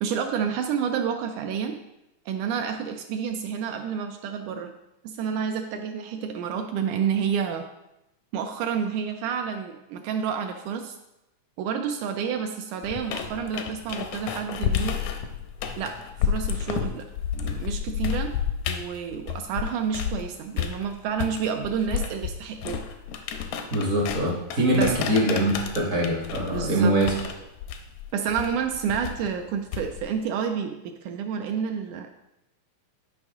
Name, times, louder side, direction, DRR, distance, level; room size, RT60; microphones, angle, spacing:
voice 1, 0.0-1.8 2.3-4.7 5.0-7.7 8.3-11.0 11.6-15.0 15.8-17.0 17.3-18.3 18.7-22.8 24.7-25.0 26.5-26.9 28.1-32.1, right 7 dB, 80° right, 5 dB, 1.9 m, -29 dB
sound 1, 12.8-20.2 20.6-30.2, left 8 dB, 75° left, 1.8 m, -31 dB
voice 2, 23.7-27.1, right 1 dB, 55° right, -3 dB, 0.9 m, -23 dB
11.5 x 5.2 x 3.5 m, 0.92 s
omnidirectional pair, 3.8 m